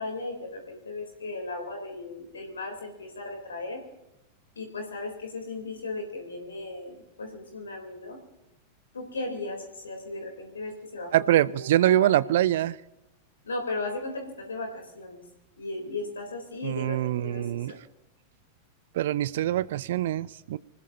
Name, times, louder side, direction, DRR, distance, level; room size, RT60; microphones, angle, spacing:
voice 1, 0.0-3.8 4.6-8.2 8.9-12.2 13.4-15.2 15.6-17.8, left 2 dB, 70° left, 3 dB, 3.5 m, -36 dB
voice 2, 11.1-12.8 16.6-17.7 19.0-20.6, right 13 dB, 55° right, 22 dB, 0.5 m, -24 dB
25.5 x 19.5 x 2.8 m, 0.93 s
figure-of-eight pair, 90°, 0 cm